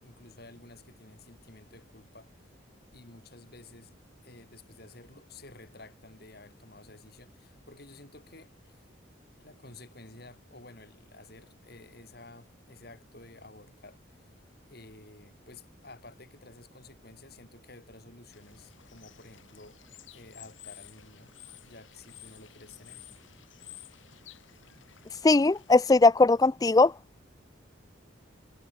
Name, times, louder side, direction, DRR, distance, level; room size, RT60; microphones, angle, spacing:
voice 1, 0.0-2.3 2.9-3.9 4.2-8.8 9.4-14.3 14.7-21.3 21.6-23.0, left 2 dB, 50° left, 4.4 m, -52 dB
Bird / Water, 18.3-25.8, left 12 dB, 80° left, 4.5 m, -53 dB
voice 2, 25.2-26.9, left 3 dB, 20° left, 0.3 m, -20 dB
head